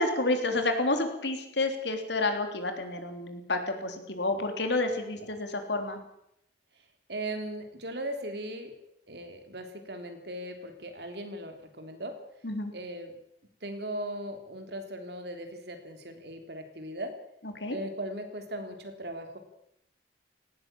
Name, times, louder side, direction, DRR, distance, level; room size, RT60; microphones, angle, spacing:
voice 1, 0.0-6.0 12.4-12.7 17.6-17.8, left 2 dB, 75° left, 6 dB, 3.6 m, -29 dB
voice 2, 7.1-8.7 9.1-12.2 12.7-13.1 13.6-17.2 17.7-19.4, right 1 dB, 65° right, 6 dB, 3.3 m, -38 dB
18.5 x 17.0 x 8.9 m, 0.78 s
head